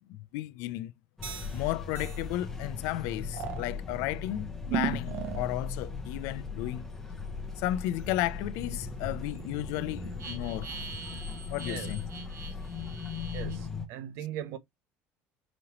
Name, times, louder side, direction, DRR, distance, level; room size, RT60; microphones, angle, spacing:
voice 1, 0.1-0.9 1.5-6.8 7.6-10.7 11.5-12.0, left 15 dB, 75° left, 0.5 m, -33 dB
sound 1, 1.2-13.9, left 5 dB, 10° left, 1.1 m, -38 dB
sound 2, 1.2-1.6 1.9-2.2 3.3-3.6 4.7-5.5 6.0-13.6, right 7 dB, 45° right, 1.0 m, -39 dB
voice 2, 13.3-14.6, right 10 dB, 65° right, 0.7 m, -39 dB
5.2 x 2.8 x 3.0 m
cardioid pair, 150°, 5 cm